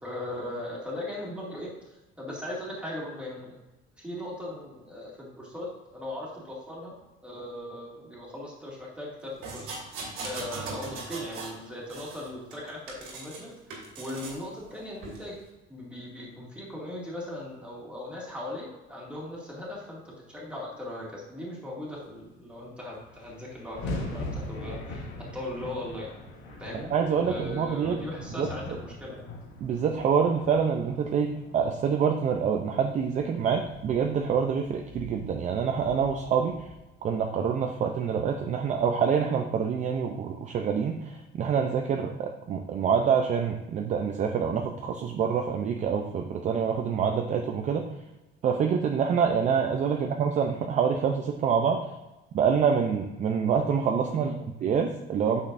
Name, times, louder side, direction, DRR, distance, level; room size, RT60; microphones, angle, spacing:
voice 1, 0.0-3.6 4.0-6.9 7.2-15.3 15.7-25.1 25.3-26.1 26.6-26.9 27.2-29.3 49.9-50.2 54.1-54.4, left 1 dB, 5° right, -4 dB, 2.1 m, -39 dB
sound 1, 9.4-11.6 11.9-13.4 13.7-14.4 15.0-15.2, right 3 dB, 80° right, 2.5 m, -39 dB
sound 2, 22.6-22.7 22.9-37.2, left 2 dB, 75° left, 2.1 m, -41 dB
voice 2, 26.7-28.0 28.4-28.5 29.6-36.7 37.0-47.9 48.4-51.8 52.3-54.3 54.6-55.4, right 6 dB, 35° right, 4 dB, 0.5 m, -26 dB
8.7 x 6.3 x 2.5 m, 1.0 s
cardioid pair, 150°, 21 cm